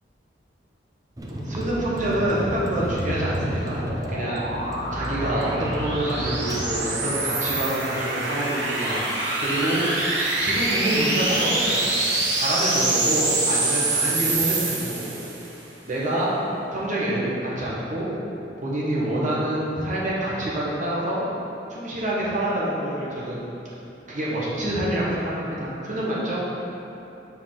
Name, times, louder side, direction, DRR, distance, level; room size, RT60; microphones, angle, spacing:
Vehicle, 1.2-6.6, equal, 20° right, 0.6 m, -31 dB
voice 1, 1.3-4.4 4.9-9.0 9.4-9.8 10.4-11.9 12.3-15.2 15.8-16.3 16.7-18.1 18.6-21.2 21.7-23.4 24.1-26.4, right 1 dB, 45° right, -7 dB, 1.4 m, -27 dB
sound 1, 3.2-15.5, right 2 dB, 90° right, 1.2 m, -26 dB
8.0 x 4.6 x 3.9 m, 2.9 s
head